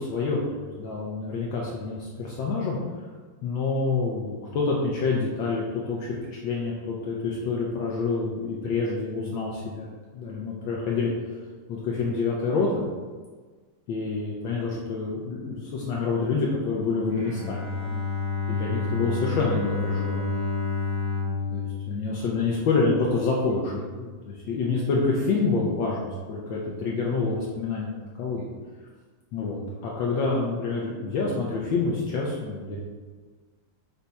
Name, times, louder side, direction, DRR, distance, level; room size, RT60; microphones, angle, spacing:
voice 1, 0.0-2.8 3.4-11.1 11.7-12.8 13.9-18.0 18.5-20.3 21.5-27.9 28.2-28.5 29.3-32.8, left 4 dB, 70° left, -3 dB, 1.3 m, -27 dB
Bowed string instrument, 17.1-23.1, left 4 dB, 35° right, 0.5 m, -30 dB
5.4 x 2.3 x 4.0 m, 1.4 s
omnidirectional pair, 2.4 m